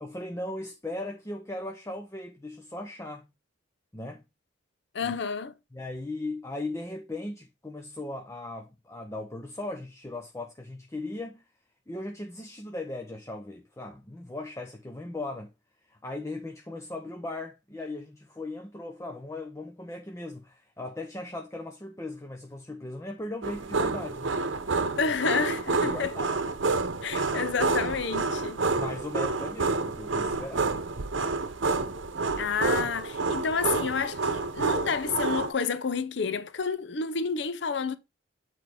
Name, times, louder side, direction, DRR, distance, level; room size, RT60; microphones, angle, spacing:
voice 1, 0.0-3.3 3.9-4.2 5.0-5.2 5.7-11.5 11.9-15.5 15.8-24.4 25.8-26.3 28.8-30.7, left 2 dB, 15° left, 0.6 m, -38 dB
voice 2, 4.9-5.5 25.0-26.1 27.0-28.6 32.4-38.0, left 5 dB, 60° left, 0.6 m, -30 dB
sound 1, 23.4-35.5, right 3 dB, 75° right, 0.8 m, -29 dB
8.4 x 4.5 x 3.4 m
head